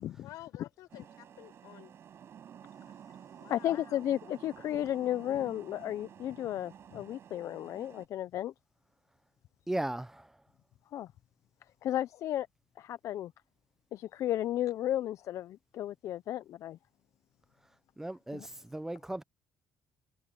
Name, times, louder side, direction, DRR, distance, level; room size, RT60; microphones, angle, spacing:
voice 1, 0.2-1.9 3.3-3.8, left 15 dB, 85° left, 5.0 m, -51 dB
sound 1, 0.9-8.1, right 9 dB, 45° right, 7.0 m, -52 dB
voice 2, 3.5-8.5 10.9-11.1 11.8-12.5 12.8-13.3 13.9-16.8 18.3-18.5, left 12 dB, 60° left, 0.5 m, -34 dB
voice 3, 9.7-10.3 18.0-19.2, right 1 dB, 5° right, 0.6 m, -36 dB
cardioid pair, 145°, 6 cm